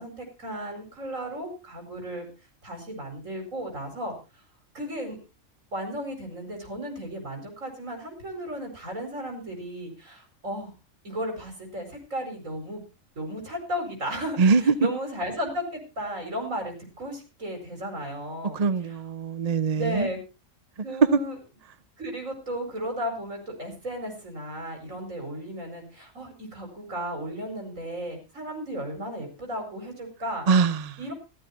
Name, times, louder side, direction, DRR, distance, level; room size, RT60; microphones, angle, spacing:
voice 1, 0.0-2.3 2.6-4.4 4.7-5.2 5.7-10.7 11.0-12.8 13.2-19.0 19.7-20.2 20.8-21.4 22.0-30.5 31.0-31.1, equal, 75° right, 5.3 m, -34 dB
voice 2, 14.4-14.9 18.5-20.1 21.1-21.2 30.5-31.0, right 4 dB, 35° right, 0.8 m, -22 dB
15.0 x 13.0 x 4.2 m
omnidirectional pair, 1.4 m